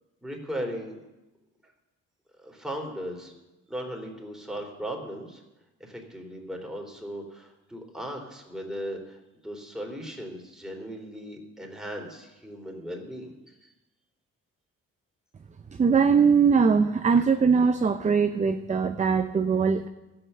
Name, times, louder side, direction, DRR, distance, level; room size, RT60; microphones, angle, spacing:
voice 1, 0.2-1.0 1.6-1.7 2.4-3.3 3.7-5.4 5.8-13.7, equal, ahead, 0 dB, 3.1 m, -37 dB
voice 2, 15.7-19.9, right 5 dB, 25° right, 9 dB, 0.6 m, -21 dB
13.5 x 7.8 x 6.7 m, 1.0 s
cardioid pair, 90°, 30 cm